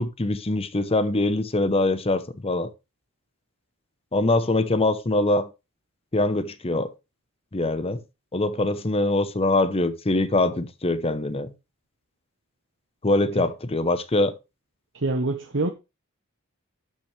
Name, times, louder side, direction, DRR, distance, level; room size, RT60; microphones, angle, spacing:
voice 1, 0.0-2.7 4.1-5.5 6.1-6.9 7.5-8.0 8.3-11.5 13.0-14.3, left 2 dB, 30° left, 0.9 m, -23 dB
voice 2, 14.9-15.7, right 2 dB, 60° right, 1.0 m, -25 dB
12.0 x 6.0 x 3.3 m
head